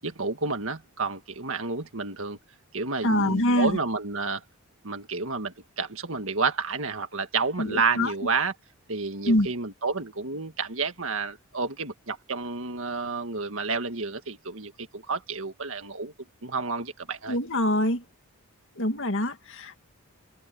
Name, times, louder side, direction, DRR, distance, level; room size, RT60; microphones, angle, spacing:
voice 1, 0.0-2.4 2.7-4.4 4.8-8.5 8.9-16.1 16.4-17.4, right 4 dB, 60° right, 2.0 m, -30 dB
voice 2, 3.0-3.8 7.6-8.1 9.3-9.5 17.3-18.0 18.8-19.8, left 1 dB, 60° left, 2.5 m, -24 dB
head